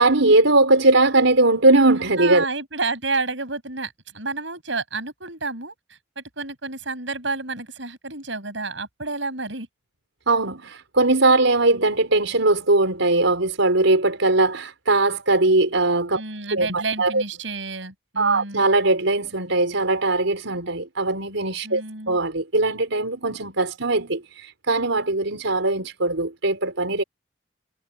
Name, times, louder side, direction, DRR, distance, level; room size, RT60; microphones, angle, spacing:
voice 1, 0.0-2.5 10.3-16.2 16.5-17.2 18.2-27.0, right 2 dB, 90° right, 5.1 m, -20 dB
voice 2, 2.2-9.7 16.1-18.7 21.6-22.2, right 3 dB, 75° right, 7.8 m, -30 dB
head